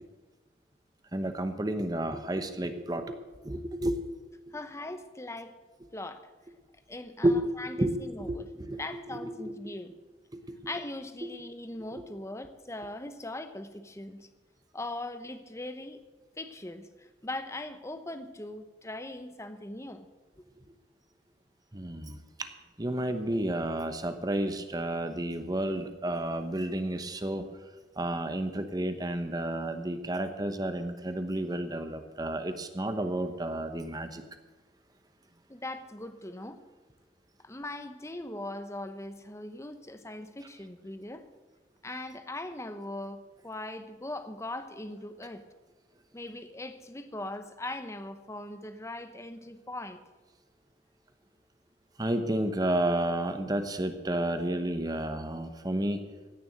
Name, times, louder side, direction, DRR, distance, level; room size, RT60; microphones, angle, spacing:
voice 1, 1.1-3.2 3.4-3.9 7.2-7.4 7.8-7.9 8.2-8.8 9.1-9.5 10.5-10.6 21.7-22.1 22.8-27.4 28.0-34.2 52.0-56.0, right 1 dB, 20° right, 9 dB, 1.0 m, -31 dB
voice 2, 4.5-5.5 5.9-6.3 6.9-8.5 8.8-9.9 10.7-14.3 14.7-16.0 16.4-20.1 20.4-20.5 35.5-36.6 37.4-41.2 41.8-45.4 46.1-50.0, left 1 dB, 15° left, 9 dB, 0.9 m, -40 dB
15.5 x 6.9 x 8.9 m, 1.2 s
head